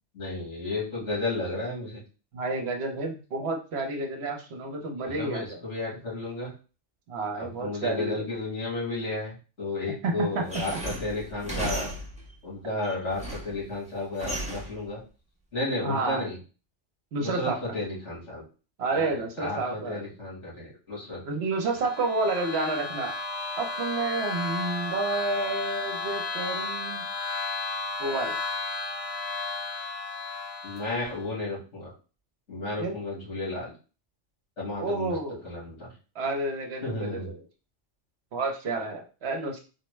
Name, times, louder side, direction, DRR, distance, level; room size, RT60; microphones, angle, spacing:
voice 1, 0.1-2.0 5.1-6.5 7.3-11.9 12.4-15.0 15.5-16.4 17.2-18.4 18.9-21.2 30.6-31.9 32.5-33.7 34.6-35.2 35.4-35.9 36.8-37.3, left 2 dB, 80° left, -6 dB, 2.3 m, -33 dB
voice 2, 2.3-5.6 7.1-8.3 10.0-10.4 10.7-10.8 15.8-16.2 17.1-17.6 18.8-20.0 21.2-23.1 23.6-27.0 28.0-28.4 32.8-32.9 34.8-35.4 36.1-37.3 38.3-39.6, right 3 dB, 65° right, 2 dB, 1.0 m, -30 dB
sound 1, 10.5-12.3 12.8-13.6 14.2-14.8, right 1 dB, 5° right, 0.8 m, -35 dB
sound 2, 21.6-31.2, left 3 dB, 30° left, 1.0 m, -33 dB
4.1 x 2.1 x 3.1 m, 0.35 s
omnidirectional pair, 1.2 m